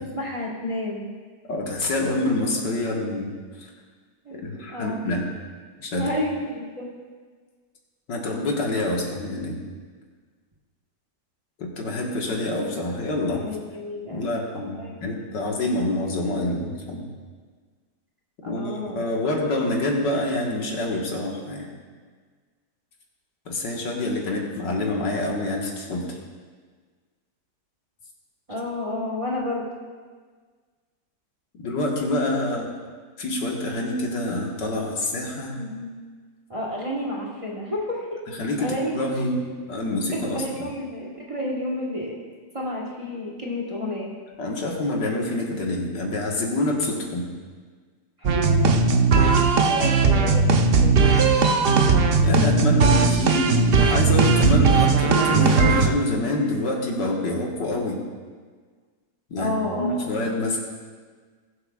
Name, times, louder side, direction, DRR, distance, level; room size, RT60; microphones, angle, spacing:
voice 1, 0.1-1.1 4.2-5.1 5.9-6.9 13.4-14.3 14.7-15.2 18.4-19.0 28.5-29.7 35.5-35.9 36.5-38.1 38.6-39.5 40.3-42.2 42.5-44.1 48.2-48.9 49.1-50.9 59.4-60.3, left 1 dB, 20° right, -3 dB, 1.2 m, -31 dB
voice 2, 1.5-3.3 3.6-3.7 4.4-5.3 5.8-6.1 8.1-9.6 11.6-13.5 14.1-17.1 18.5-21.7 23.5-26.2 31.6-32.7 33.2-35.6 38.4-39.4 39.7-40.7 44.4-47.3 52.2-58.0 59.3-60.6, left 2 dB, 85° left, -1 dB, 2.2 m, -26 dB
sound 1, 48.2-55.9, right 4 dB, 70° right, 0.5 m, -18 dB
19.5 x 7.9 x 2.4 m, 1.5 s
omnidirectional pair, 1.8 m